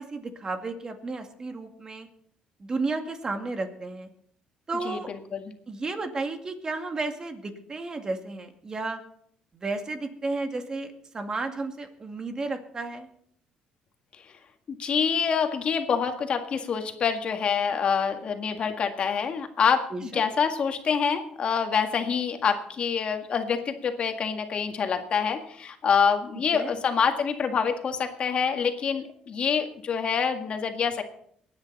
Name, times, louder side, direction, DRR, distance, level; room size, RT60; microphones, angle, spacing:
voice 1, 0.0-2.1 2.6-4.1 4.7-5.1 5.7-9.0 9.5-13.1 19.9-20.2 26.5-26.7, right 3 dB, 30° right, 5 dB, 2.2 m, -33 dB
voice 2, 4.9-5.5 14.7-31.0, left 6 dB, 50° left, 6 dB, 1.8 m, -26 dB
23.5 x 9.6 x 4.1 m, 0.65 s
cardioid pair, 100°, 2 cm